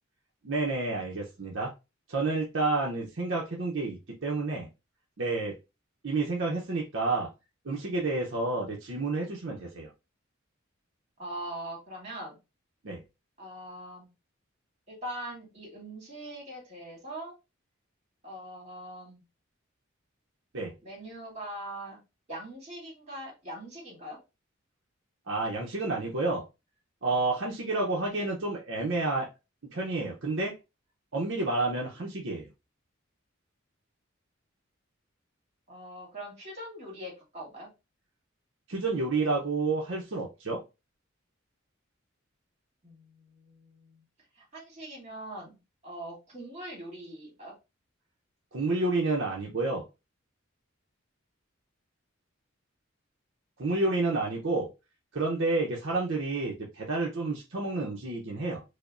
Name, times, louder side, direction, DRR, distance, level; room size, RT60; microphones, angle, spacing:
voice 1, 0.4-1.7 2.1-4.7 5.2-5.5 6.0-7.3 7.6-9.9 12.8-13.0 20.5-20.7 25.3-26.4 27.0-29.3 29.7-30.6 31.1-32.5 38.7-40.6 48.5-49.8 53.6-54.7 55.1-58.6, right 3 dB, 65° right, 0.7 m, -30 dB
voice 2, 11.2-12.4 13.4-14.1 14.9-17.4 18.2-19.2 20.8-22.0 22.3-24.2 35.7-37.7 42.8-44.0 44.4-45.6 45.8-47.6, right 1 dB, 35° right, 2.0 m, -42 dB
4.9 x 2.1 x 2.5 m
head